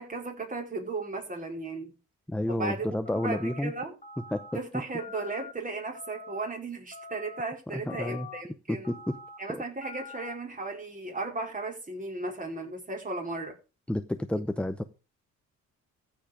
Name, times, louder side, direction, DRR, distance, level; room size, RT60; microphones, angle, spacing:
voice 1, 0.0-1.9 2.5-2.9 3.2-3.9 4.5-8.9 9.4-13.5, right 3 dB, 25° right, 4.6 m, -35 dB
voice 2, 2.3-3.7 4.3-4.4 7.7-8.3 8.7-9.1 9.5-9.6 13.9-14.8, left 1 dB, 5° left, 0.7 m, -30 dB
sound 1, 3.1-3.6 4.0-4.6 5.0-5.5 5.9-6.5 6.9-7.5 7.9-8.4 8.8-9.4 9.8-10.4, left 4 dB, 25° left, 1.9 m, -44 dB
15.0 x 5.2 x 5.1 m
cardioid pair, 90°, 30 cm